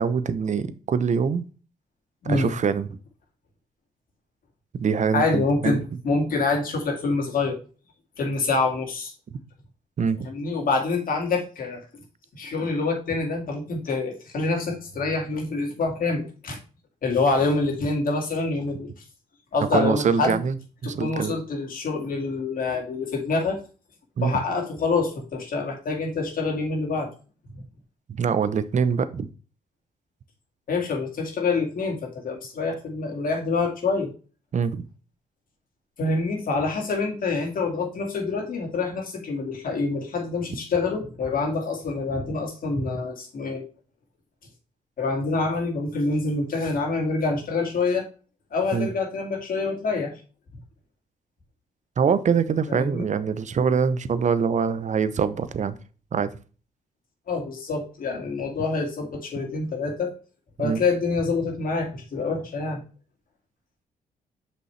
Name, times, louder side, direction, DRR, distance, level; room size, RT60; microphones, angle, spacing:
voice 1, 0.0-1.4 2.3-2.9 4.7-5.8 10.0-10.2 19.7-20.6 20.8-21.3 24.2-24.3 28.2-29.3 34.5-34.8 48.7-48.9 52.0-55.8 56.1-56.3 60.6-60.8, right 6 dB, 50° right, 14 dB, 0.7 m, -24 dB
voice 2, 5.1-7.6 8.2-9.1 10.2-11.8 12.3-16.6 17.0-18.9 19.5-20.4 20.8-23.6 24.2-27.1 27.5-27.6 30.7-34.1 36.0-43.6 45.0-48.1 48.5-50.1 52.7-53.1 57.3-60.1 60.6-62.8, left 3 dB, 60° left, 1 dB, 2.4 m, -26 dB
6.5 x 5.3 x 3.3 m, 0.36 s
supercardioid pair, 65°, 16 cm